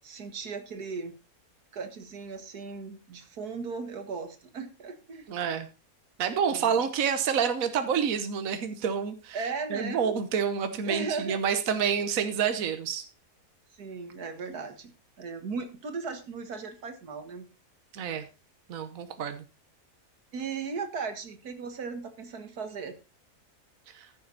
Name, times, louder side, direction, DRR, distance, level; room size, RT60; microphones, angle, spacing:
voice 1, 0.0-1.1 1.7-5.3 6.5-6.8 9.3-10.2 10.7-11.4 13.7-14.9 15.2-17.5 20.3-22.9, right 5 dB, 90° right, 8 dB, 2.1 m, -37 dB
voice 2, 5.3-5.7 6.2-9.4 9.7-13.0 17.9-18.3 18.7-19.4 23.9-24.1, right 7 dB, 65° right, 9 dB, 1.4 m, -28 dB
14.0 x 7.8 x 4.0 m, 0.30 s
omnidirectional pair, 1.6 m